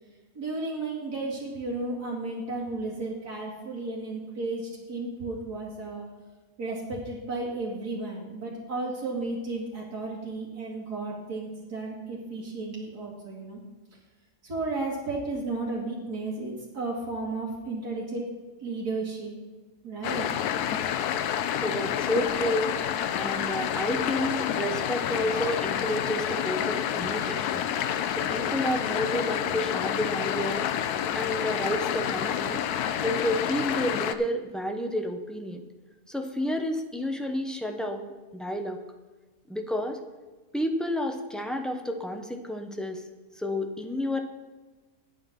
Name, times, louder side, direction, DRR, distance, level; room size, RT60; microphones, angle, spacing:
voice 1, 0.3-6.1 6.6-13.6 14.4-18.3 18.6-19.4 19.8-20.3, right 3 dB, 80° right, -4 dB, 2.5 m, -33 dB
sound 1, 20.0-34.2, left 9 dB, 80° left, 1.2 m, -29 dB
voice 2, 21.6-22.7 23.1-27.7 28.2-30.6 31.1-32.6 33.0-35.6 36.1-38.1 38.3-38.8 39.5-40.0 40.5-43.0 43.3-44.2, left 1 dB, ahead, 4 dB, 0.4 m, -30 dB
9.3 x 8.4 x 5.9 m, 1.3 s
omnidirectional pair, 1.6 m